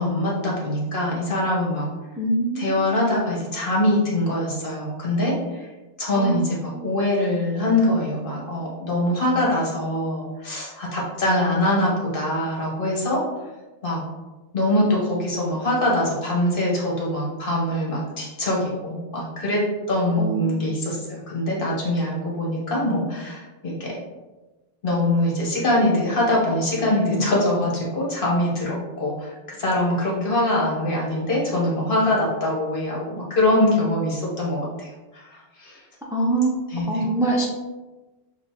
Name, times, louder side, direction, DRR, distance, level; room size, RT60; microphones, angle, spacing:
voice 1, 0.0-1.9 2.6-5.7 6.0-13.2 13.8-14.0 14.5-23.9 24.8-35.8 36.7-37.0, left 1 dB, 60° left, -4 dB, 1.3 m, -23 dB
voice 2, 2.2-3.1 6.1-6.9 20.2-20.7 36.1-37.5, right 2 dB, 5° right, -2 dB, 0.4 m, -25 dB
6.4 x 2.5 x 2.9 m, 1.1 s
omnidirectional pair, 1.1 m